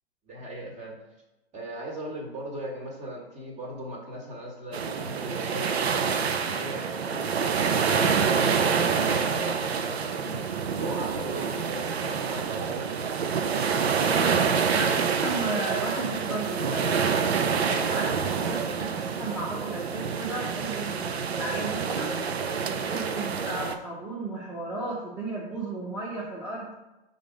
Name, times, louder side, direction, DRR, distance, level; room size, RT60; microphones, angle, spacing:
voice 1, 0.3-1.0 1.5-13.1, right 1 dB, 20° right, -1 dB, 1.5 m, -38 dB
sound 1, 4.7-23.7, right 6 dB, 75° right, 0.6 m, -27 dB
voice 2, 14.0-14.9 15.2-17.0 17.4-22.2 22.7-26.7, right 2 dB, 5° right, -7 dB, 0.9 m, -34 dB
4.7 x 4.0 x 5.1 m, 1.0 s
figure-of-eight pair, 115°, 32 cm